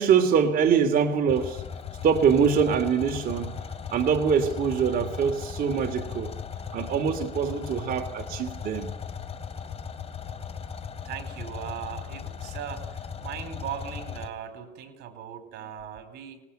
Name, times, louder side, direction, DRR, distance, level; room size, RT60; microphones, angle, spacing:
voice 1, 0.0-1.6 2.0-3.6 3.9-6.3 6.7-8.9, right 7 dB, 60° right, 3.1 m, -24 dB
sound 1, 1.3-14.3, left 6 dB, 35° left, 3.0 m, -37 dB
voice 2, 11.0-16.4, right 9 dB, 75° right, 4.5 m, -38 dB
26.0 x 20.5 x 9.2 m
cardioid pair, 110°, 17 cm